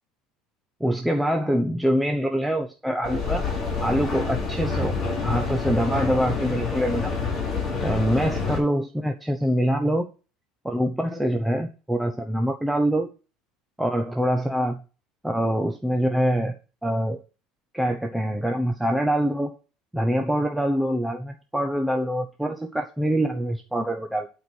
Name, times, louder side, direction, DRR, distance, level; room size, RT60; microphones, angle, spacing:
voice 1, 0.8-3.4 3.8-4.9 5.2-7.1 7.8-10.1 10.6-13.1 13.8-14.8 15.2-16.6 16.8-17.2 17.7-19.5 19.9-24.3, equal, 5° right, 3 dB, 0.8 m, -24 dB
Mechanical fan, 3.0-8.6, left 4 dB, 30° left, 5.5 m, -27 dB
11.5 x 4.6 x 6.3 m, 0.33 s
cardioid pair, 160°, 0 cm